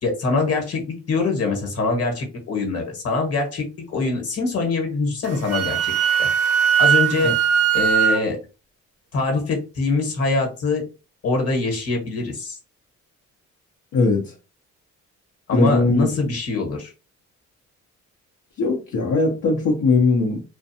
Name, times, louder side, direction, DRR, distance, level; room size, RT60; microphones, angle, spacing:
voice 1, 0.0-5.9 6.2-6.3 6.8-7.4 7.7-8.4 9.1-10.9 11.2-12.6 15.5-16.9, left 3 dB, 55° left, 1.2 m, -23 dB
Wind instrument woodwind instrument, 5.3-8.2, right 8 dB, 55° right, 0.6 m, -19 dB
voice 2, 13.9-14.3 15.5-16.1 18.6-20.5, left 3 dB, 75° left, 0.8 m, -20 dB
2.5 x 2.2 x 2.7 m
cardioid pair, 90°, 30 cm